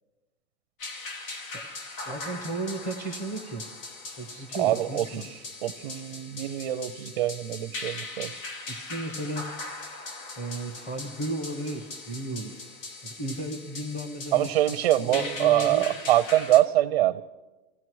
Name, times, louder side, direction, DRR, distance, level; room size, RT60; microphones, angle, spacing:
sound 1, 0.8-16.6, left 3 dB, 80° left, 2.1 m, -40 dB
voice 1, 2.0-3.6 4.2-5.3 8.7-9.4 10.4-12.5 13.0-15.9, right 1 dB, 20° left, 4 dB, 1.3 m, -34 dB
voice 2, 4.6-8.3 14.3-17.2, right 14 dB, 40° right, 11 dB, 0.5 m, -24 dB
27.5 x 16.0 x 3.1 m, 1.2 s
supercardioid pair, 175°, 38 cm